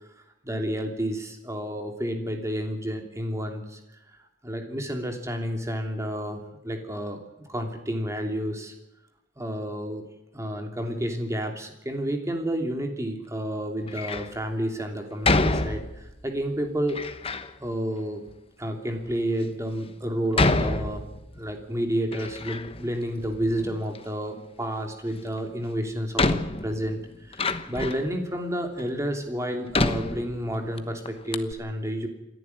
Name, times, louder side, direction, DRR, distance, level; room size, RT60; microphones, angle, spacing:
voice 1, 0.4-3.8 4.4-7.2 7.5-8.7 9.4-10.0 10.3-18.2 18.6-21.0 21.3-27.0 27.3-32.1, equal, 15° right, 3 dB, 3.1 m, -30 dB
Door, 13.9-14.4 15.2-16.2 16.9-17.5 18.3-18.4 19.1-19.2 20.3-21.5 21.8-22.9 23.2-24.0 25.4-25.5 26.2-28.1 28.8-28.9 29.7-30.8 31.1-31.2 31.3-31.5, left 2 dB, 30° left, 1.0 m, -27 dB
28.0 x 11.0 x 9.8 m, 0.91 s
head